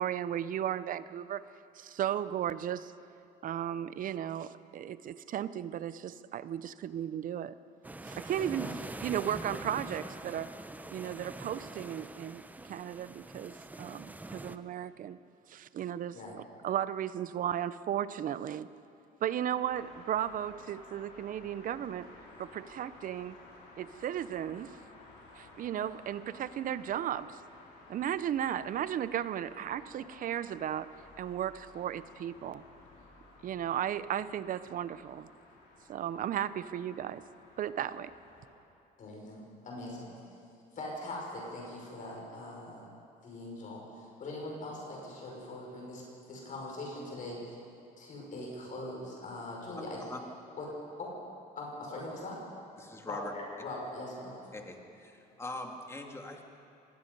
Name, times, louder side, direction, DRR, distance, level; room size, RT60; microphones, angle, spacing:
voice 1, 0.0-1.4 1.7-2.9 3.4-7.5 8.0-10.5 10.9-15.2 15.5-16.2 16.6-18.7 19.2-22.1 22.4-23.4 23.8-24.8 25.4-27.4 27.9-30.9 31.2-32.6 33.4-35.3 35.9-37.2 37.6-38.1, right 10 dB, 55° right, 15 dB, 0.7 m, -35 dB
sound 1, 7.8-14.6, right 2 dB, 10° right, 0.8 m, -44 dB
sound 2, 19.5-38.5, left 2 dB, 85° left, 5.4 m, -55 dB
voice 2, 39.0-40.1 40.7-42.8 43.2-46.0 46.3-47.6 48.0-50.0 50.6-50.7 51.0-51.1 51.6-52.4 53.0-54.4, left 2 dB, 50° left, -2 dB, 5.6 m, -41 dB
voice 3, 52.8-53.3 54.5-56.4, left 2 dB, 15° left, 2 dB, 2.4 m, -42 dB
25.5 x 19.0 x 5.4 m, 2.6 s
cardioid pair, 110°, 17 cm